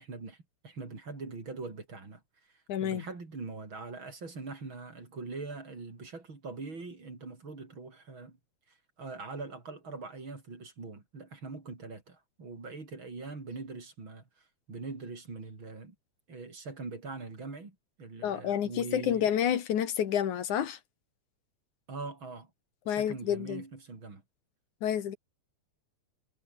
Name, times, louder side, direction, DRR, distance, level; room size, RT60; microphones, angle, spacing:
voice 1, 0.0-8.4 8.7-16.0 16.3-19.3 21.9-22.5 22.8-24.2, right 3 dB, 40° right, 5.4 m, -42 dB
voice 2, 2.7-3.0 18.2-20.8 22.9-23.6 24.8-25.2, left 9 dB, 80° left, 3.3 m, -29 dB
omnidirectional pair, 3.4 m